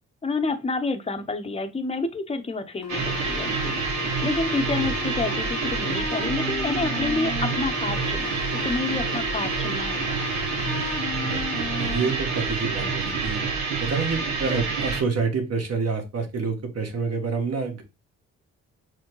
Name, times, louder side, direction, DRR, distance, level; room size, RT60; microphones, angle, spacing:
voice 1, 0.2-3.8 4.2-10.2, left 3 dB, 15° left, 0.8 m, -29 dB
sound 1, 2.8-12.1, left 7 dB, 50° left, 0.7 m, -35 dB
sound 2, 2.9-15.0, right 5 dB, 80° right, 1.0 m, -27 dB
voice 2, 11.3-13.4 13.8-17.8, right 4 dB, 45° right, 1.4 m, -28 dB
6.3 x 2.1 x 3.0 m
hypercardioid pair, 50°, 35 cm